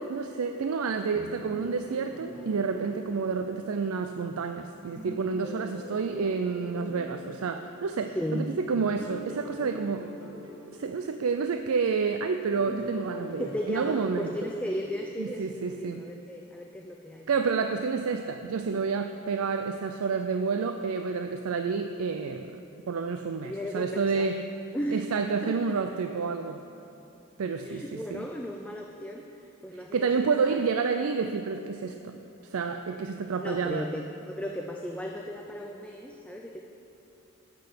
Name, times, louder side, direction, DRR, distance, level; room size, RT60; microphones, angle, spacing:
voice 1, 0.0-10.0 10.7-14.3 15.2-16.0 17.3-22.6 22.9-24.4 24.9-26.6 27.4-28.2 29.9-32.2 32.5-33.8, right 5 dB, 85° right, 7 dB, 0.4 m, -29 dB
sound 1, 1.1-4.5 4.9-8.2 8.8-12.1 12.6-15.8, equal, 25° right, 2.3 m, -44 dB
voice 2, 8.1-8.6 13.4-17.3 23.4-24.3 24.7-25.1 25.4-25.8 27.6-30.6 33.4-36.6, equal, 5° left, 1 dB, 0.4 m, -35 dB
12.0 x 6.1 x 6.8 m, 2.9 s
head